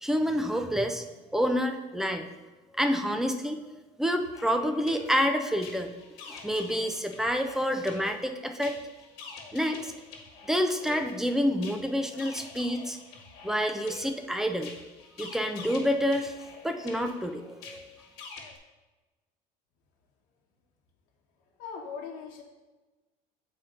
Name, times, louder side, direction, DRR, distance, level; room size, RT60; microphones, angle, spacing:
voice 1, 0.0-1.0 1.3-2.3 2.7-3.7 4.0-5.9 6.3-8.8 9.5-9.9 10.4-13.0 13.4-14.7 15.2-16.4 16.6-17.9, equal, 5° right, 5 dB, 0.4 m, -28 dB
sound 1, 4.2-18.6, left 5 dB, 85° left, 1.2 m, -47 dB
voice 2, 21.6-22.4, left 6 dB, 55° left, -2 dB, 1.1 m, -39 dB
7.7 x 4.3 x 3.8 m, 1.2 s
cardioid pair, 160°, 16 cm